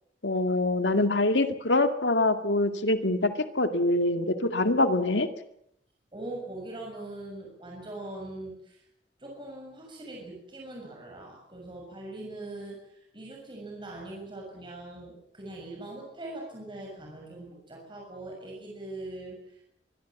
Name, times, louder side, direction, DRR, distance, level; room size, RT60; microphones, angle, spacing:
voice 1, 0.2-5.3, left 2 dB, 90° left, 8 dB, 2.2 m, -25 dB
voice 2, 6.1-8.8 9.2-19.4, right 2 dB, 30° right, -1 dB, 6.6 m, -41 dB
24.5 x 22.0 x 7.3 m, 0.75 s
head